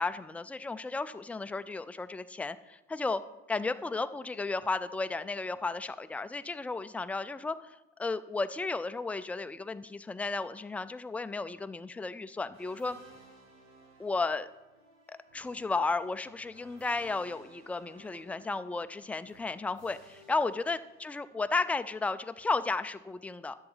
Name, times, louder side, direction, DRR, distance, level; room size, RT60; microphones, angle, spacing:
voice 1, 0.0-3.2 3.5-13.0 14.0-14.5 15.1-23.6, left 3 dB, 5° left, 11 dB, 0.3 m, -34 dB
sound 1, 12.5-21.4, right 2 dB, 65° right, 3.2 m, -58 dB
10.5 x 7.2 x 3.9 m, 1.0 s
supercardioid pair, 95°, 29 cm